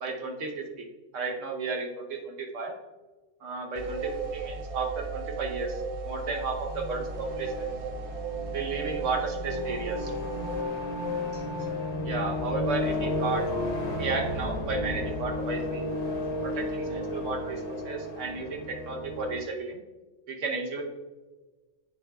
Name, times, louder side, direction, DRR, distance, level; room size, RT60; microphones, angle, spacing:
voice 1, 0.0-0.9 1.1-2.7 3.4-5.8 6.0-7.7 8.5-10.1 11.3-11.4 12.0-13.5 14.0-15.9 16.4-19.8 20.3-20.8, right 4 dB, 80° right, 2 dB, 1.3 m, -33 dB
sound 1, 3.8-10.6, right 4 dB, 55° right, 0.4 m, -35 dB
sound 2, 6.6-19.4, left 2 dB, 65° left, 1.3 m, -33 dB
8.3 x 6.9 x 2.3 m, 1.3 s
omnidirectional pair, 1.3 m